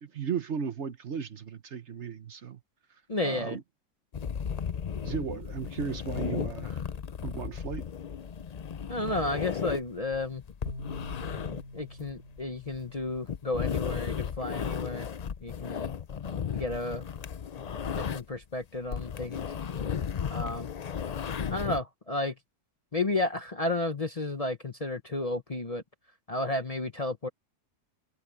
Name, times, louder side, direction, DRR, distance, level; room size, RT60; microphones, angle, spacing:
voice 1, 0.0-2.6 3.2-3.6 5.0-6.8 7.2-7.8, right 6 dB, 55° right, 1.2 m, -35 dB
voice 2, 3.1-3.6 8.9-10.4 11.7-15.1 15.4-15.9 16.5-17.1 17.6-17.7 17.9-19.5 20.3-20.7 21.5-22.3 22.9-25.8 26.3-27.3, left 2 dB, 30° left, 0.9 m, -32 dB
sound 1, 4.1-18.4 18.7-21.8, left 7 dB, 60° left, 0.4 m, -35 dB
sound 2, 10.7-13.9, left 2 dB, 85° left, 4.1 m, -45 dB
omnidirectional pair, 1.6 m